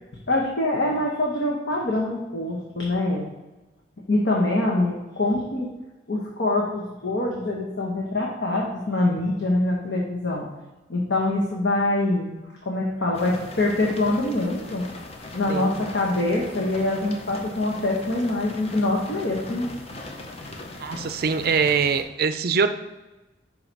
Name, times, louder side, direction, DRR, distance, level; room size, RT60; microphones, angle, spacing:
voice 1, 0.3-3.3 4.1-5.7 6.1-10.4 10.9-12.3 12.6-14.8 15.3-19.7, left 2 dB, 65° left, -3 dB, 1.0 m, -24 dB
sound 1, 13.1-22.0, left 2 dB, 35° left, 0.6 m, -40 dB
voice 2, 20.8-22.7, right 5 dB, 55° right, 10 dB, 0.5 m, -23 dB
5.6 x 4.2 x 4.5 m, 1.1 s
head